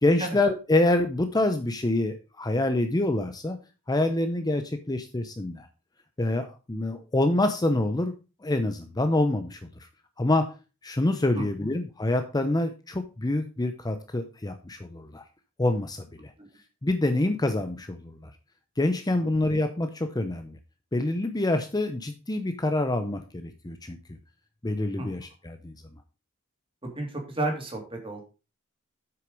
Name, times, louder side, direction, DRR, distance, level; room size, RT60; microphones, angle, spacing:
voice 1, 0.0-3.6 3.9-5.7 6.2-8.1 8.4-9.6 10.2-10.5 10.8-15.2 15.6-16.3 16.8-18.3 18.8-20.6 20.9-24.0 24.6-25.7, left 2 dB, 20° left, 8 dB, 0.7 m, -26 dB
voice 2, 26.8-28.3, right 2 dB, 25° right, 2 dB, 2.8 m, -32 dB
7.9 x 6.5 x 5.1 m, 0.32 s
head